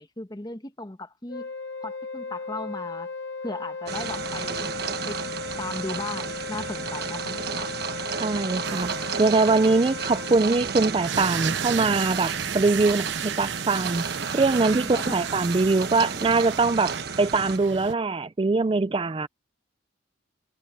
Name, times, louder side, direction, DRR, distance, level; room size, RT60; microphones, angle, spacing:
voice 1, 0.0-1.5 1.8-3.1 3.4-4.7 5.1-7.7 14.8-15.3, left 2 dB, 20° left, 1.1 m, -37 dB
Wind instrument woodwind instrument, 1.3-10.4, left 4 dB, 65° left, 2.4 m, -36 dB
sound 1, 3.9-17.6, right 5 dB, 55° right, 1.3 m, -33 dB
voice 2, 8.2-8.9 9.2-14.1 14.3-19.3, right 3 dB, 25° right, 0.4 m, -22 dB
sound 2, 8.6-17.9, right 7 dB, 70° right, 0.7 m, -34 dB
head